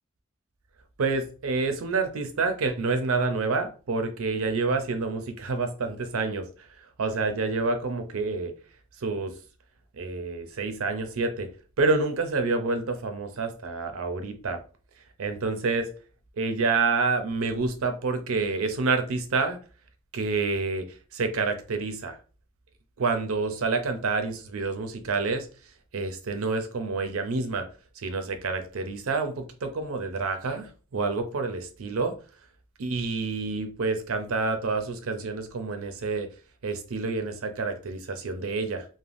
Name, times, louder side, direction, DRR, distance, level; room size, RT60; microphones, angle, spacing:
voice 1, 1.0-6.5 7.0-8.5 9.0-9.3 10.0-11.5 11.8-14.6 15.2-15.9 16.4-19.6 20.1-20.8 21.1-22.2 23.0-25.5 25.9-27.7 28.0-32.1 32.8-36.3 36.6-38.9, right 3 dB, 75° right, 0.5 m, -28 dB
3.3 x 2.1 x 2.5 m
head